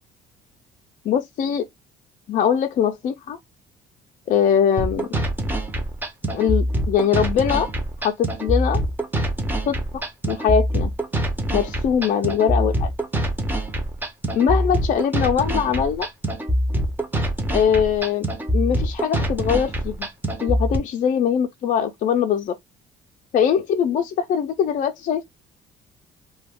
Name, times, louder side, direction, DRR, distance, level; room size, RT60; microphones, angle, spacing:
voice 1, 1.1-1.6 2.3-3.4 4.3-5.1 6.3-7.7 8.0-8.8 9.6-9.8 10.3-10.9 11.5-12.9 14.3-16.1 17.5-18.2 18.5-20.1 20.4-22.6 23.3-25.2, left 8 dB, 50° left, 0.4 m, -21 dB
sound 1, 4.8-20.8, right 1 dB, 10° right, 0.6 m, -24 dB
2.3 x 2.2 x 3.4 m
cardioid pair, 110°, 17 cm